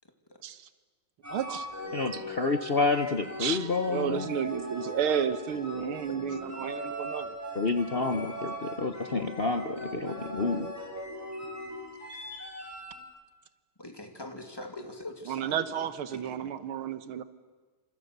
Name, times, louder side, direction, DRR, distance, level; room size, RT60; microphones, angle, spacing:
sound 1, 1.2-13.0, equal, 5° right, 5.5 m, -39 dB
voice 1, 1.3-1.7 2.1-2.2 3.4-7.4 15.3-17.2, right 8 dB, 80° right, 13 dB, 1.9 m, -32 dB
voice 2, 1.9-4.3 7.5-10.7, left 3 dB, 50° left, 8 dB, 0.7 m, -29 dB
voice 3, 13.8-16.6, left 1 dB, 10° left, 4 dB, 2.4 m, -43 dB
28.5 x 26.5 x 6.7 m, 1.3 s
omnidirectional pair, 2.3 m